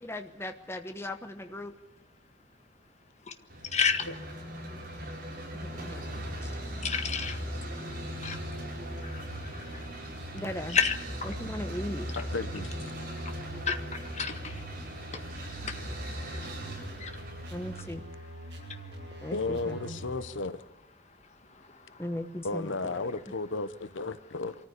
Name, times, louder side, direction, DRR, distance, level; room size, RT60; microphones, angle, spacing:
voice 1, 0.0-1.7 5.6-6.0 6.4-6.5 10.3-10.8 11.3-12.1 17.5-18.0 19.2-20.0 22.0-23.1, left 1 dB, 15° left, 6 dB, 1.2 m, -38 dB
sound 1, 3.5-17.8, equal, 45° right, 7.8 m, -39 dB
voice 2, 3.7-4.0 6.8-7.4 8.2-8.4 9.1-9.2 10.7-11.0 13.7-13.8 14.2-14.5 15.6-15.7 17.0-17.1, left 6 dB, 35° left, 7 dB, 1.7 m, -28 dB
sound 2, 5.6-20.2, right 2 dB, 70° right, 6.0 m, -45 dB
voice 3, 12.2-12.9 19.3-20.6 22.4-24.5, left 3 dB, 90° left, 13 dB, 1.0 m, -34 dB
24.5 x 14.0 x 8.2 m, 0.96 s
head